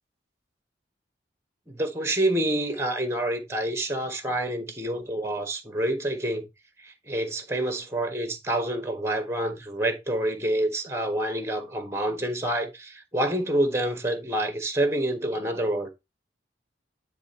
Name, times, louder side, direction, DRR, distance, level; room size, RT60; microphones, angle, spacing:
voice 1, 1.7-6.5 6.8-15.9, right 1 dB, 15° right, 1.2 m, -27 dB
9.8 x 3.4 x 4.2 m
head